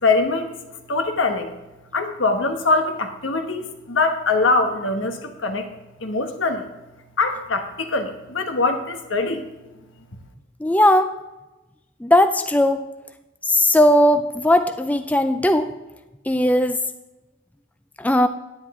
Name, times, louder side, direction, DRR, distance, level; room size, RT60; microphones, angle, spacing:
voice 1, 0.0-0.6 0.9-1.5 1.9-5.7 6.0-6.7 7.2-9.4, left 3 dB, 85° left, 6 dB, 1.2 m, -22 dB
voice 2, 10.6-11.2 12.0-12.9 13.5-15.7 16.3-16.8 18.0-18.3, left 1 dB, 10° left, 9 dB, 0.3 m, -18 dB
10.0 x 9.7 x 3.7 m, 1.0 s
head